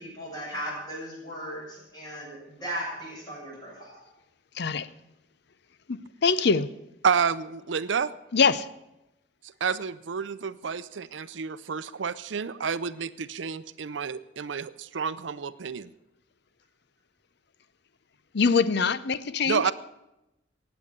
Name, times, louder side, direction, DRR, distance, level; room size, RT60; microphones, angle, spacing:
voice 1, 0.0-4.0, equal, 25° left, -4 dB, 7.2 m, -37 dB
voice 2, 4.5-4.9 5.9-6.7 8.3-8.7 18.3-19.7, left 5 dB, 65° left, 16 dB, 0.6 m, -24 dB
voice 3, 7.0-8.1 9.6-15.9 19.5-19.7, right 6 dB, 80° right, 14 dB, 0.6 m, -29 dB
18.5 x 8.0 x 7.3 m, 0.91 s
head